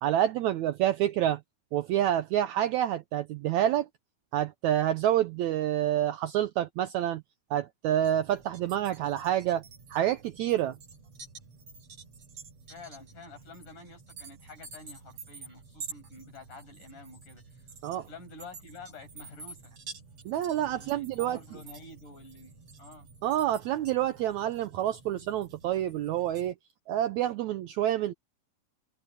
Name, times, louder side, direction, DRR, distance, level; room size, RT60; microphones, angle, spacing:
voice 1, 0.0-1.4 1.7-3.9 4.3-7.2 7.5-9.6 9.9-10.8 17.8-18.1 20.3-21.4 23.2-26.5 26.9-28.1, right 12 dB, 80° right, 1.7 m, -28 dB
sound 1, 8.0-26.5, right 4 dB, 45° right, 5.0 m, -49 dB
voice 2, 12.7-17.7 18.0-19.8 20.6-23.1, left 3 dB, 60° left, 9.6 m, -49 dB
omnidirectional pair, 4.0 m